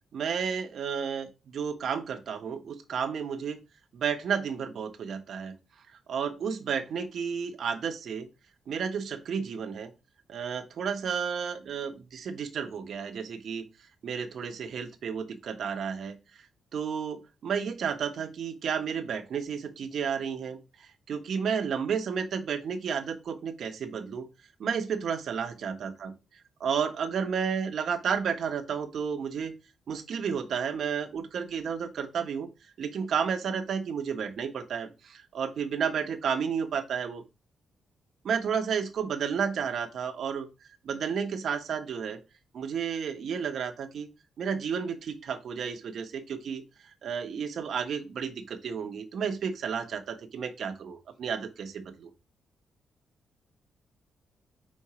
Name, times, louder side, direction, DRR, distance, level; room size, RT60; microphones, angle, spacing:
voice 1, 0.1-3.6 3.9-5.5 6.1-8.3 8.7-9.9 10.3-13.7 14.0-16.2 16.7-20.6 21.1-24.3 24.6-26.1 26.6-29.5 29.9-32.5 32.8-37.2 38.2-40.5 40.8-42.2 42.5-44.1 44.4-46.6 47.0-52.1, right 7 dB, 65° right, 8 dB, 1.0 m, -32 dB
4.5 x 4.3 x 4.9 m, 0.28 s
cardioid pair, 90°, 0 cm